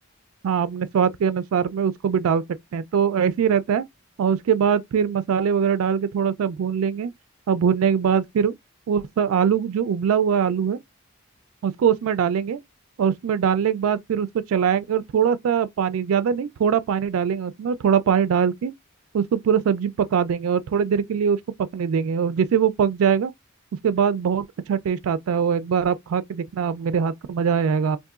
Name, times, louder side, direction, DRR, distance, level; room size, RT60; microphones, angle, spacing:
voice 1, 0.4-2.4 2.7-3.8 4.2-7.1 7.5-8.5 8.9-10.8 11.6-12.6 13.0-18.7 19.1-21.4 21.7-23.3 23.8-28.0, right 7 dB, 80° right, 0.3 m, -22 dB
3.7 x 2.6 x 2.3 m
head